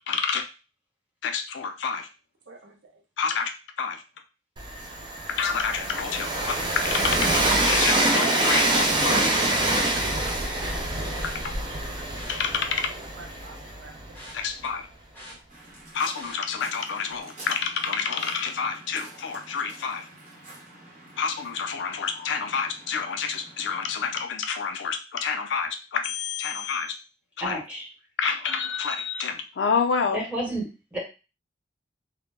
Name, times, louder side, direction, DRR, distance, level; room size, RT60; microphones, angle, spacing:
voice 1, 0.1-0.4 1.2-2.1 3.2-3.5 3.8-4.0 5.3-7.3 7.6-9.2 11.2-11.3 12.3-12.9 14.3-14.9 15.9-20.1 21.2-26.9 27.4-27.6 28.2-30.2, left 6 dB, 75° left, 7 dB, 0.4 m, -28 dB
voice 2, 2.5-3.0 6.6-6.7 9.0-10.1 10.5-10.9 12.6-14.5 15.3-15.4, right 3 dB, 80° right, 3 dB, 0.6 m, -44 dB
Train, 4.6-14.4, right 1 dB, 25° right, 0.4 m, -25 dB
sound 1, 10.1-10.7 11.1-11.4 12.0-13.3 13.6-15.8 16.1-16.6 17.0-17.3 17.6-17.7, equal, 10° left, 0.7 m, -46 dB
voice 3, 10.4-10.8 27.4-27.9 30.1-31.0, right 1 dB, 10° right, -5 dB, 1.0 m, -32 dB
Waves surf, 15.5-24.2, right 2 dB, 45° right, 0.9 m, -47 dB
2.1 x 2.0 x 3.2 m, 0.31 s
head